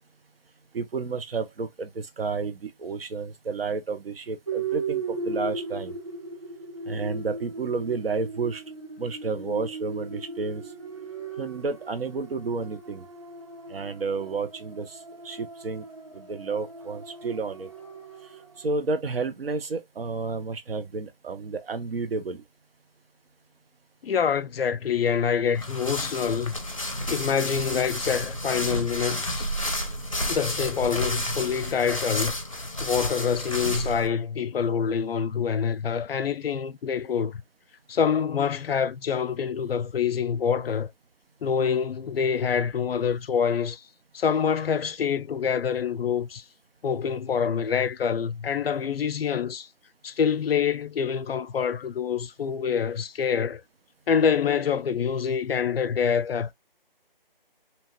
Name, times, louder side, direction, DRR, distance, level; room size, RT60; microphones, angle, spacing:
voice 1, 0.7-5.9 6.9-8.6 9.0-10.6 11.4-13.0 13.7-15.0 15.2-15.8 16.1-17.7 18.6-22.4, right 4 dB, 80° right, 0.7 m, -31 dB
sound 1, 4.5-18.7, right 4 dB, 35° right, 0.4 m, -37 dB
voice 2, 24.0-26.5 27.1-29.5 30.3-32.3 32.8-37.4 37.9-40.9 41.4-43.8 44.1-46.4 46.8-49.7 50.0-53.6 54.1-56.5, left 7 dB, 85° left, 0.5 m, -26 dB
sound 2, 25.5-34.1, left 1 dB, 35° left, 0.5 m, -31 dB
2.9 x 2.2 x 2.9 m
figure-of-eight pair, 175°, 29 cm